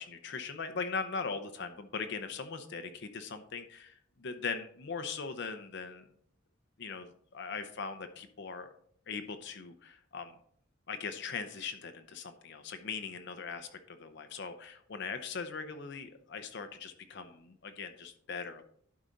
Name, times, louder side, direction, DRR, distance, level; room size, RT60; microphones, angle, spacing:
voice 1, 0.0-6.1 6.8-8.7 9.1-10.3 10.9-18.6, left 5 dB, 60° left, 8 dB, 0.7 m, -40 dB
11.5 x 4.8 x 4.0 m, 0.65 s
head